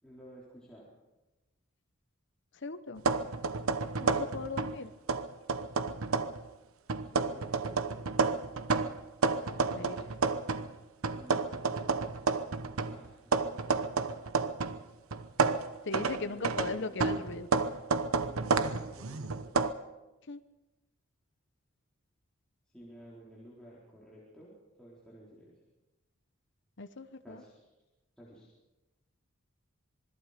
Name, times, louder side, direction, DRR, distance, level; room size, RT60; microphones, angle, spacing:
voice 1, 0.0-0.9 7.1-8.3 11.0-12.4 12.8-13.7 16.2-16.9 18.2-19.5 22.7-25.6 27.2-27.5 28.2-28.5, equal, 5° left, -7 dB, 4.0 m, -53 dB
voice 2, 2.5-3.0 4.0-4.9 9.7-10.1 15.8-17.5 20.3-20.4 26.8-27.4, left 3 dB, 55° left, 10 dB, 1.0 m, -38 dB
sound 1, 3.0-4.8 5.1-6.4 6.9-10.7 11.0-14.8 15.1-19.7, right 4 dB, 80° right, 0.9 m, -30 dB
26.5 x 21.0 x 5.1 m, 1.1 s
head